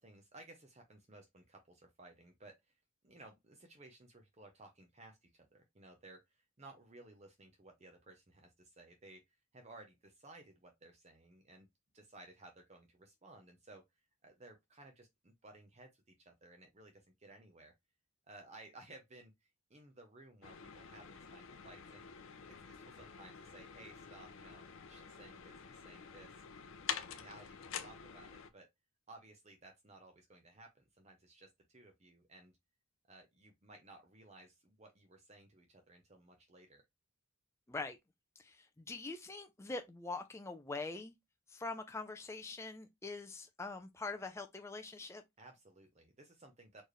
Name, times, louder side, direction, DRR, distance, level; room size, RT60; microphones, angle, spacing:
voice 1, 0.0-2.8 3.0-9.2 9.5-11.7 11.9-13.8 14.2-17.7 18.3-22.1 22.5-26.3 27.1-28.7 29.1-32.5 33.1-36.8 45.4-46.8, right 2 dB, 30° right, 0.7 m, -58 dB
sound 1, 20.4-28.5, left 7 dB, 60° left, 0.6 m, -47 dB
voice 2, 37.7-38.0 38.4-41.1 41.5-45.2, left 3 dB, 10° left, 0.4 m, -44 dB
4.4 x 3.2 x 3.1 m
head